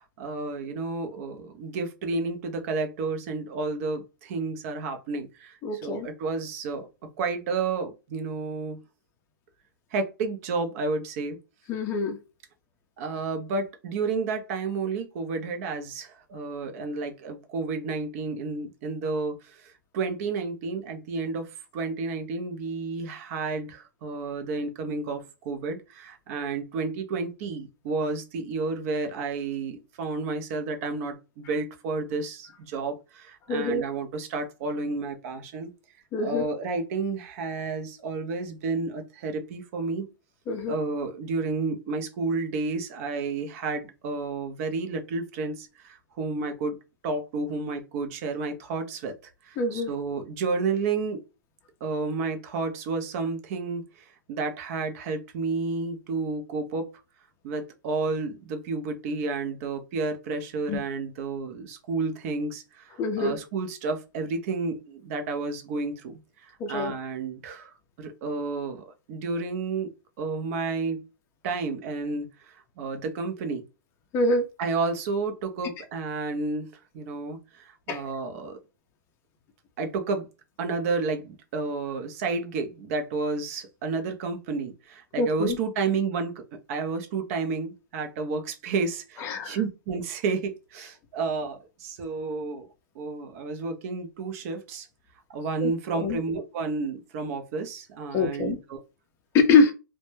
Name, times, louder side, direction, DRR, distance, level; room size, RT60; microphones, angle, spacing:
voice 1, 0.0-6.9 7.2-8.8 9.9-11.4 13.0-35.7 36.2-40.1 40.7-46.8 47.0-51.2 51.8-56.9 57.4-69.9 70.2-71.0 71.4-73.6 74.6-76.7 76.9-78.6 79.8-80.3 80.6-92.7 92.9-94.9 95.3-98.8, right 4 dB, 40° right, 0.5 m, -31 dB
voice 2, 5.6-6.1 11.7-12.2 33.5-33.8 36.1-36.5 40.5-40.7 49.6-49.9 60.7-60.8 63.0-63.4 66.6-66.9 74.1-74.4 77.9-78.0 85.2-85.6 89.2-89.6 95.6-96.2 98.1-98.6 99.3-99.7, left 3 dB, 20° left, 0.5 m, -24 dB
2.1 x 2.1 x 3.0 m
hypercardioid pair, 140°, 11 cm